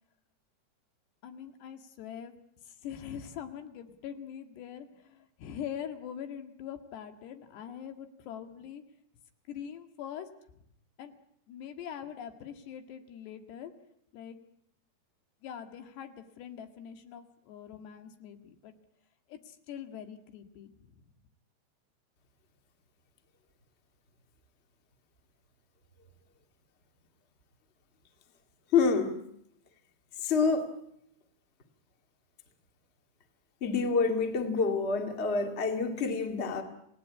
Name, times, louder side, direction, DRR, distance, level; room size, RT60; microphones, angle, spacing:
voice 1, 1.2-2.4 2.7-8.8 9.5-10.3 11.0-11.1 11.5-13.7 14.1-14.4 15.4-18.7 19.3-21.0, left 9 dB, 85° left, 7 dB, 4.1 m, -43 dB
voice 2, 28.7-29.2 30.2-30.7 33.6-36.6, left 5 dB, 20° left, 6 dB, 1.8 m, -27 dB
29.5 x 18.5 x 8.5 m, 0.74 s
omnidirectional pair, 4.7 m